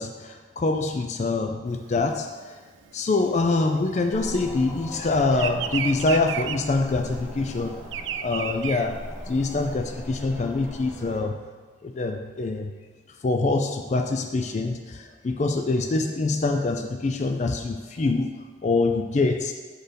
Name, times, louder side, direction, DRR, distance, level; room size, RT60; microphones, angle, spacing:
voice 1, 0.0-2.3 2.9-7.8 8.2-9.0 9.3-11.4 11.8-12.7 13.2-19.5, left 3 dB, 40° left, 5 dB, 0.4 m, -25 dB
Bird vocalization bird call bird song, 1.8-4.7 4.9-9.7, right 9 dB, 85° right, 0.3 m, -33 dB
sound 1, 4.1-11.2, equal, 10° left, 1.6 m, -40 dB
7.7 x 4.4 x 5.1 m, 1.5 s
head